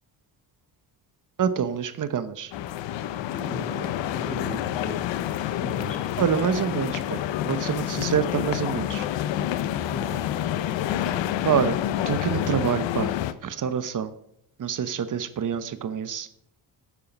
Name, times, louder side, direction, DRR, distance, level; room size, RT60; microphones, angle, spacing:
voice 1, 1.4-2.5 6.2-9.1 11.4-11.8 12.1-13.1 13.4-14.1 14.6-16.3, right 8 dB, 45° right, 13 dB, 1.0 m, -26 dB
sound 1, 2.5-13.3, left 11 dB, 85° left, 0.8 m, -28 dB
voice 2, 3.3-5.0 5.6-6.0 9.9-10.2, left 1 dB, 20° left, -3 dB, 2.7 m, -37 dB
12.0 x 7.5 x 5.3 m, 0.71 s
cardioid pair, 95°, 43 cm